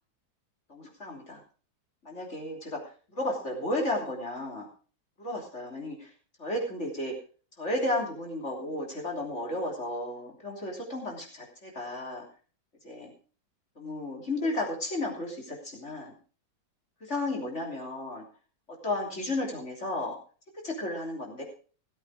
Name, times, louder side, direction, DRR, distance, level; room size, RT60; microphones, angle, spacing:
voice 1, 0.7-1.4 2.0-2.8 3.1-4.7 5.2-6.1 6.4-7.1 7.6-12.2 12.8-13.1 13.8-16.1 17.0-18.3 18.7-20.1 20.6-21.4, left 1 dB, 40° left, 0 dB, 3.5 m, -33 dB
17.5 x 8.3 x 4.9 m, 0.39 s
omnidirectional pair, 1.8 m